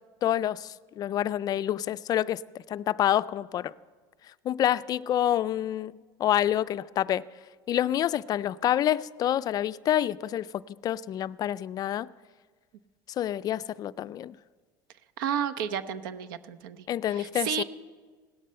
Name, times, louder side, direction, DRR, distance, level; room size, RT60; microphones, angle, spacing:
voice 1, 0.2-3.7 4.4-5.9 6.2-7.3 7.7-12.1 13.2-14.4 16.9-17.6, left 11 dB, 35° left, 0.3 m, -27 dB
voice 2, 15.2-17.6, right 8 dB, 90° right, 0.9 m, -32 dB
17.0 x 13.0 x 5.5 m
supercardioid pair, 130°, 11 cm